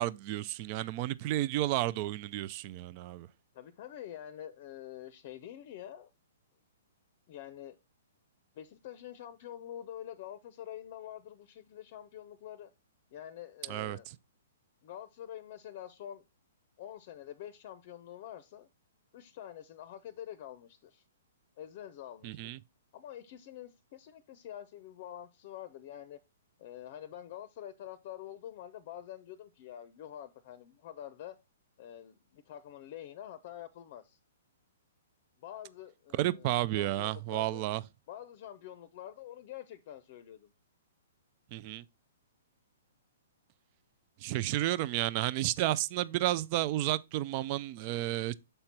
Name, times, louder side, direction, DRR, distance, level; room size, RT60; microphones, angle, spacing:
voice 1, 0.0-3.3 13.7-14.0 22.2-22.6 36.1-37.8 41.5-41.8 44.2-48.4, right 15 dB, 40° right, 0.4 m, -32 dB
voice 2, 3.5-6.1 7.3-7.8 8.6-12.7 13.1-14.1 14.8-16.2 16.8-18.7 19.1-21.0 21.6-22.5 22.9-26.2 26.6-31.4 31.8-34.2 35.4-36.5 36.8-37.6 38.1-40.5, left 11 dB, 45° left, 0.6 m, -46 dB
6.7 x 4.4 x 4.2 m
hypercardioid pair, 125°, 0 cm